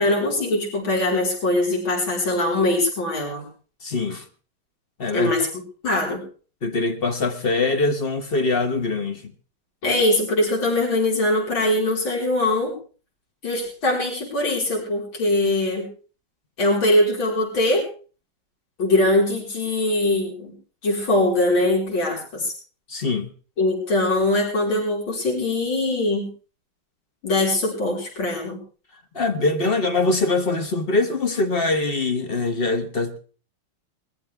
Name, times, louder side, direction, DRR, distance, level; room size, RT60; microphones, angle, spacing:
voice 1, 0.0-3.5 5.1-5.5 5.8-6.2 9.8-12.7 13.4-15.9 16.6-17.8 18.8-20.5 20.8-22.5 23.6-26.3 27.2-28.6, left 1 dB, 70° left, 5.4 m, -22 dB
voice 2, 3.8-4.2 5.0-5.3 6.6-9.3 22.9-23.3 29.1-33.2, left 3 dB, 35° left, 1.1 m, -23 dB
22.0 x 14.0 x 3.5 m
omnidirectional pair, 2.3 m